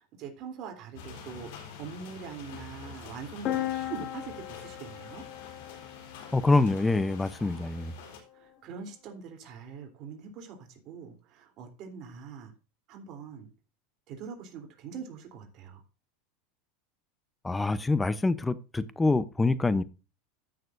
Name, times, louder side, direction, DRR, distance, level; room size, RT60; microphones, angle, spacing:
voice 1, 0.0-5.2 7.4-7.7 8.0-12.5 12.9-13.5 14.1-15.8, right 6 dB, 45° right, 3 dB, 3.3 m, -43 dB
sound 1, 0.9-8.2, left 6 dB, 75° left, 3.9 m, -47 dB
sound 2, 3.5-7.2, left 13 dB, 40° left, 2.1 m, -37 dB
voice 2, 6.3-7.9 17.4-19.8, left 3 dB, 10° left, 16 dB, 0.7 m, -25 dB
14.5 x 6.7 x 2.6 m, 0.31 s
supercardioid pair, 135°, 0 cm